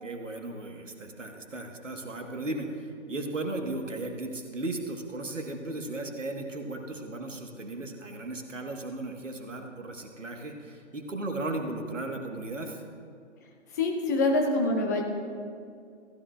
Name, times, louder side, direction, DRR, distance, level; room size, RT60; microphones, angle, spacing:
voice 1, 0.0-12.8, right 2 dB, 75° right, 3 dB, 1.6 m, -36 dB
voice 2, 13.7-15.0, left 2 dB, 15° left, 2 dB, 0.7 m, -25 dB
15.5 x 11.0 x 2.5 m, 2.3 s
figure-of-eight pair, 135°, 38 cm